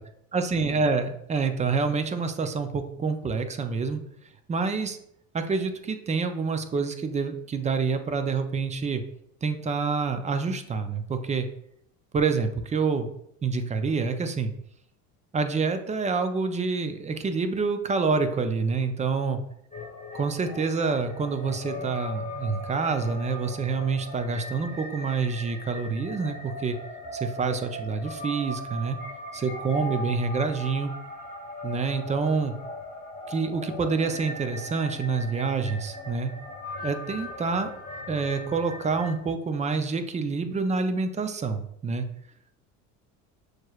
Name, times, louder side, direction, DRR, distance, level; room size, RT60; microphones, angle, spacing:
voice 1, 0.3-4.0 4.5-5.0 5.3-9.0 9.4-11.5 12.1-13.1 13.4-14.5 15.3-19.4 20.1-26.8 27.1-29.0 29.3-30.9 31.6-32.5 33.3-36.3 36.8-37.7 38.1-42.1, right 4 dB, 20° right, 8 dB, 0.4 m, -27 dB
sound 1, 19.7-39.2, left 2 dB, 20° left, 1.2 m, -39 dB
6.3 x 3.1 x 2.3 m, 0.73 s
supercardioid pair, 100°, 40 cm